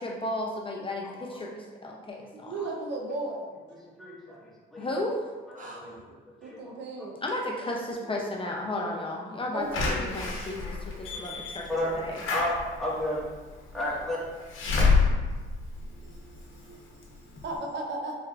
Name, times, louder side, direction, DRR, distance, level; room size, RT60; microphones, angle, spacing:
voice 1, 0.0-2.5 4.8-5.3 7.2-11.7 12.0-12.2, left 1 dB, 25° left, -1 dB, 0.5 m, -34 dB
voice 2, 2.5-3.5 6.4-7.2 9.5-10.4 17.4-18.2, right 2 dB, 65° right, 0 dB, 0.7 m, -35 dB
voice 3, 4.0-4.9 5.6-6.0 6.4-6.7 8.9-9.0 9.7-9.8 11.1-11.2 11.7-12.0 12.3-13.2 13.7-14.2, left 1 dB, ahead, -8 dB, 1.5 m, -32 dB
voice 4, 5.6-6.0 15.9-17.4, right 2 dB, 40° right, -1 dB, 0.4 m, -50 dB
Slam / Alarm, 9.7-16.5 17.0-17.1 17.4-17.5, left 4 dB, 80° left, 0.8 m, -28 dB
4.3 x 3.5 x 2.4 m, 1.3 s
cardioid pair, 90°, 20 cm